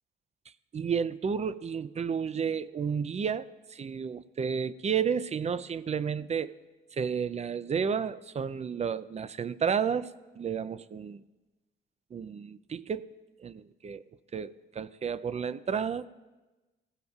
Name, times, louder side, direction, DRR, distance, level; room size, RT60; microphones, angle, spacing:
voice 1, 0.7-6.5 6.9-10.1 10.4-11.2 12.1-13.1 13.4-14.1 14.3-16.1, right 6 dB, 35° right, 15 dB, 0.5 m, -31 dB
21.0 x 15.5 x 2.4 m, 1.2 s
cardioid pair, 90°, 20 cm